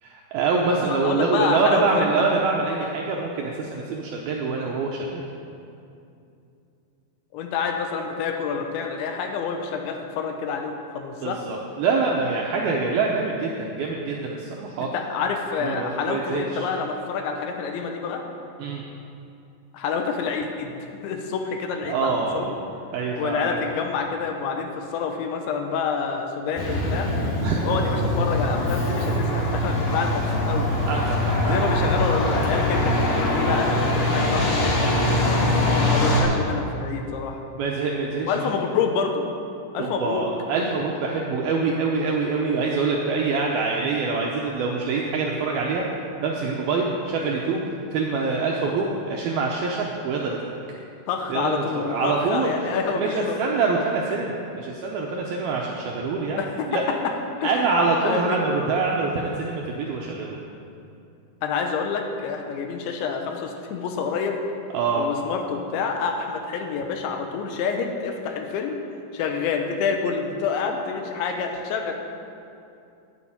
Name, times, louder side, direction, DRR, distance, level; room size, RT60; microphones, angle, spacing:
voice 1, 0.0-5.2 11.2-14.9 15.6-16.7 18.6-18.8 21.8-22.5 22.9-23.8 27.4-27.7 30.9-31.7 37.6-38.5 39.8-45.8 46.2-50.6 51.3-56.4 56.7-56.8 57.4-60.4 64.7-65.1, right 4 dB, 80° right, -2 dB, 2.2 m, -25 dB
voice 2, 0.7-2.1 7.3-11.4 14.8-18.2 19.7-22.6 23.1-27.1 27.6-30.7 31.5-35.2 35.9-37.4 38.3-39.2 39.7-40.2 51.1-53.4 56.4-56.7 57.4-57.5 58.0-58.5 61.4-64.4 64.9-68.8 69.1-71.9, left 5 dB, 80° left, 4 dB, 3.2 m, -28 dB
Truck, 26.6-36.2, left 1 dB, 55° left, 2.9 m, -22 dB
9.6 x 8.9 x 8.7 m, 2.6 s
omnidirectional pair, 5.4 m